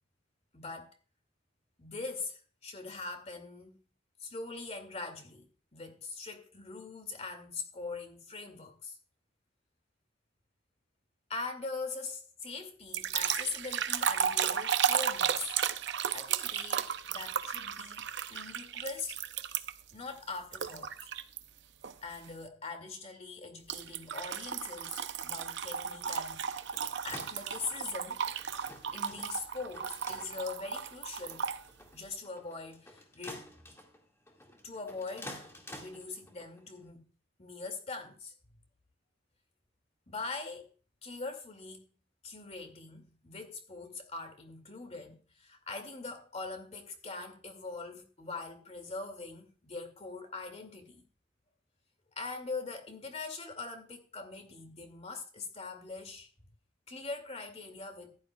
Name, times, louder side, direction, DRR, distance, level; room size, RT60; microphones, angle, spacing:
voice 1, 0.5-0.9 1.8-3.8 4.2-5.5 5.7-9.0 11.3-15.5 16.1-19.2 19.9-21.1 22.0-26.6 27.0-28.2 28.9-31.5 31.9-33.5 34.6-35.5 35.7-37.1 37.4-38.3 40.1-40.7 41.0-41.8 42.2-51.1 52.2-56.3 56.9-58.2, left 3 dB, 35° left, 2.3 m, -42 dB
sound 1, 12.9-19.9 20.5-21.4 21.8-22.1 23.7-31.6, right 8 dB, 60° right, 0.6 m, -34 dB
sound 2, 26.5-36.9, left 1 dB, 15° left, 1.9 m, -51 dB
15.0 x 11.5 x 2.3 m
head